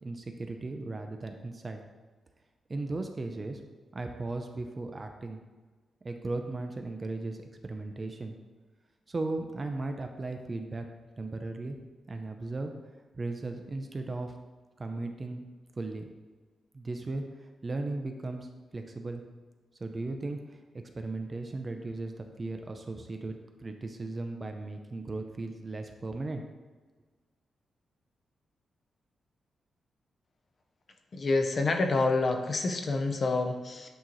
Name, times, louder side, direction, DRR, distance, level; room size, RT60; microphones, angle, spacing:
voice 1, 0.0-1.8 2.7-3.6 3.9-5.4 6.0-8.3 9.1-10.9 11.2-11.8 12.1-12.7 13.1-14.3 14.8-15.4 15.8-16.1 16.7-18.5 18.7-19.2 19.8-20.6 20.9-26.4, right 2 dB, 25° right, 5 dB, 0.5 m, -36 dB
voice 2, 31.1-33.9, left 3 dB, 35° left, 5 dB, 0.6 m, -27 dB
8.8 x 3.0 x 3.9 m, 1.3 s
wide cardioid pair, 170°, 0 cm